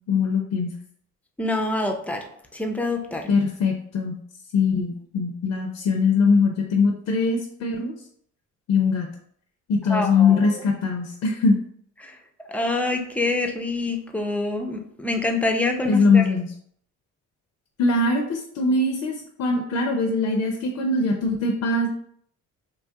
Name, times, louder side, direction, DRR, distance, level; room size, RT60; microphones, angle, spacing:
voice 1, 0.1-0.7 3.3-4.2 4.5-7.9 8.7-9.1 9.7-11.6 15.8-16.5 17.8-21.9, left 4 dB, 65° left, 2 dB, 0.5 m, -22 dB
voice 2, 1.4-2.2 2.5-3.2 9.9-10.5 12.5-16.2, left 2 dB, 5° left, 3 dB, 0.4 m, -26 dB
3.0 x 2.3 x 2.7 m, 0.64 s
cardioid pair, 90°, 30 cm